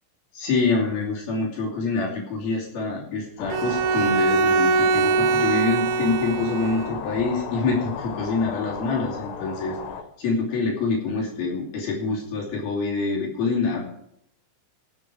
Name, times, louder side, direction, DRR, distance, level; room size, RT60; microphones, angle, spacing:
voice 1, 0.3-9.8 10.2-13.8, left 4 dB, 55° left, -3 dB, 4.3 m, -26 dB
sound 1, 3.4-10.0, left 6 dB, 85° left, 3.7 m, -35 dB
Bowed string instrument, 3.5-7.0, right 4 dB, 80° right, 3.2 m, -22 dB
16.5 x 7.7 x 4.7 m, 0.74 s
omnidirectional pair, 5.7 m